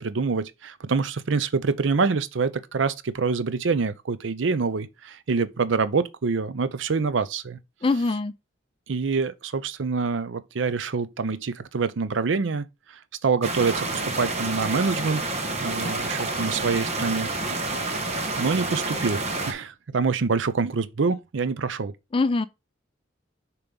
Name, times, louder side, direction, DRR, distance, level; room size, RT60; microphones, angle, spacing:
voice 1, 0.0-7.6 8.9-15.2 15.6-17.3 18.4-21.9, right 4 dB, 75° right, 0.6 m, -26 dB
voice 2, 7.8-8.3 22.1-22.5, left 3 dB, 30° left, 0.4 m, -23 dB
sound 1, 13.4-19.5, right 2 dB, 35° right, 1.2 m, -29 dB
6.9 x 3.0 x 5.2 m
head